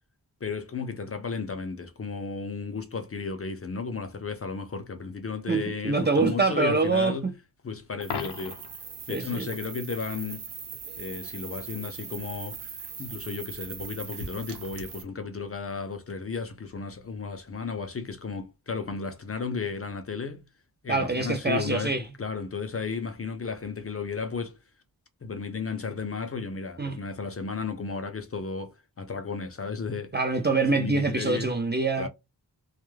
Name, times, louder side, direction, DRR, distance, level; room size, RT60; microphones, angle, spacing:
voice 1, 0.4-7.3 7.6-8.6 9.1-10.5 11.0-12.7 13.0-20.4 20.8-24.6 25.2-30.2 30.7-31.5 32.0-32.1, left 5 dB, 35° left, 0.5 m, -34 dB
voice 2, 5.5-7.1 9.1-9.5 20.9-22.0 26.8-27.0 30.1-32.1, right 3 dB, 25° right, 0.4 m, -25 dB
Coin (dropping), 8.0-8.9 14.9-15.1, left 6 dB, 90° left, 0.6 m, -36 dB
sound 1, 8.0-15.0, right 5 dB, 85° right, 0.8 m, -40 dB
2.3 x 2.1 x 3.1 m
wide cardioid pair, 115°, 40 cm